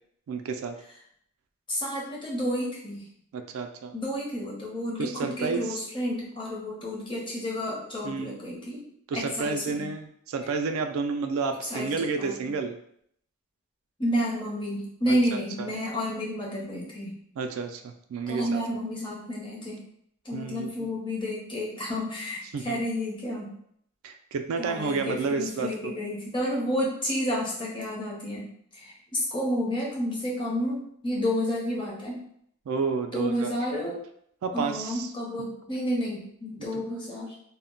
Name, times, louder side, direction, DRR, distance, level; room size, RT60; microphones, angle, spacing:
voice 1, 0.3-0.8 3.3-3.9 5.0-5.8 8.0-8.3 9.1-12.8 15.1-15.2 15.6-15.7 17.4-18.6 20.3-20.9 22.5-22.8 24.0-25.9 32.7-33.5 34.4-35.1 36.6-36.7, right 4 dB, 75° right, 7 dB, 0.3 m, -30 dB
voice 2, 1.7-3.1 3.9-8.8 9.1-9.9 11.6-12.5 14.0-17.2 18.3-19.8 20.2-23.5 24.6-28.5 28.7-32.2 33.1-34.0 34.5-37.3, equal, 25° left, -4 dB, 0.7 m, -30 dB
2.1 x 2.1 x 3.7 m, 0.68 s
head